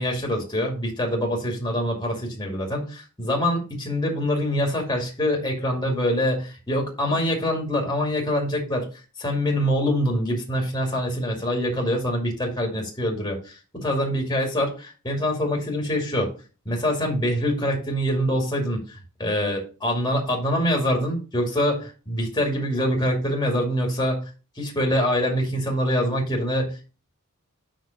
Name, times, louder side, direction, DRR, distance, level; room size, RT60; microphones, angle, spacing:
voice 1, 0.0-8.9 9.2-16.3 16.7-24.3 24.6-26.9, equal, 20° left, 1 dB, 2.3 m, -25 dB
5.8 x 5.2 x 6.4 m, 0.34 s
head